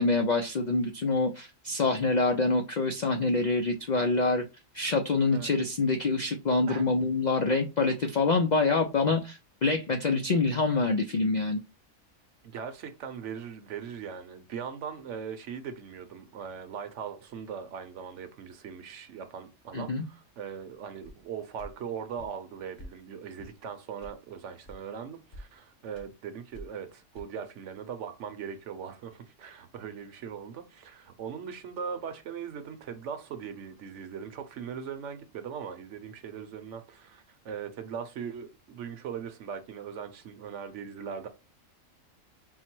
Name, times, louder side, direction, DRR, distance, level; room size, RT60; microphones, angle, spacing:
voice 1, 0.0-4.4 4.7-11.6 19.7-20.0, left 3 dB, 75° left, 0.4 m, -26 dB
voice 2, 12.5-41.3, right 7 dB, 65° right, 1.0 m, -40 dB
sound 1, 21.0-21.2 21.6-21.7 22.2-22.4 22.8-22.9 23.4-23.6 24.0-24.2 24.6-24.8 25.1-25.5 25.9-26.1 26.5-26.8 27.1-27.2, equal, 40° left, 1.5 m, -46 dB
4.5 x 2.1 x 4.4 m
omnidirectional pair, 1.4 m